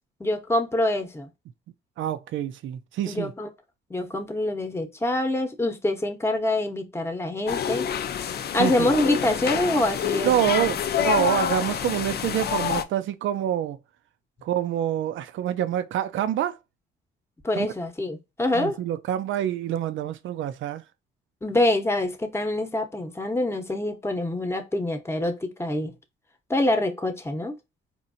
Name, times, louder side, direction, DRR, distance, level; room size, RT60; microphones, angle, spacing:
voice 1, 0.2-1.3 3.1-3.5 3.9-7.9 8.5-10.8 17.4-18.8 21.4-25.9 26.5-27.5, left 1 dB, 10° left, 0.9 m, -25 dB
voice 2, 2.0-3.3 8.6-8.9 10.2-13.8 14.4-16.6 17.6-17.7 18.5-20.8, right 11 dB, 75° right, 0.5 m, -26 dB
sound 1, 7.5-12.8, left 9 dB, 55° left, 0.5 m, -27 dB
4.3 x 2.6 x 2.6 m
cardioid pair, 90°, 20 cm